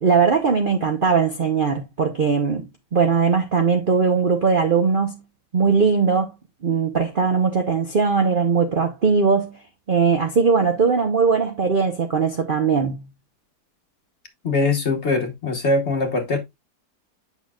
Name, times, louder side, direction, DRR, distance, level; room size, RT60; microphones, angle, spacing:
voice 1, 0.0-2.7 2.9-5.2 5.5-6.3 6.6-9.6 9.9-13.0, right 5 dB, 50° right, 0.7 m, -20 dB
voice 2, 14.4-16.4, left 3 dB, 45° left, 1.3 m, -22 dB
8.3 x 5.9 x 2.3 m
omnidirectional pair, 1.8 m